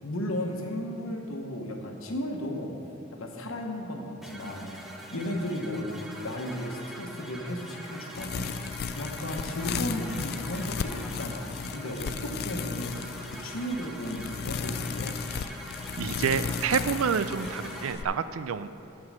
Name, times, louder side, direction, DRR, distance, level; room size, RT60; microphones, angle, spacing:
voice 1, 0.0-2.7 3.1-4.7 5.1-5.9 6.2-15.1, equal, 85° left, 2 dB, 1.2 m, -35 dB
sound 1, 4.2-17.9, right 1 dB, ahead, 0.8 m, -43 dB
sound 2, 8.1-18.0, left 6 dB, 50° left, 0.3 m, -35 dB
voice 2, 16.0-18.7, right 6 dB, 90° right, 13 dB, 0.4 m, -28 dB
13.0 x 4.7 x 6.2 m, 2.8 s
head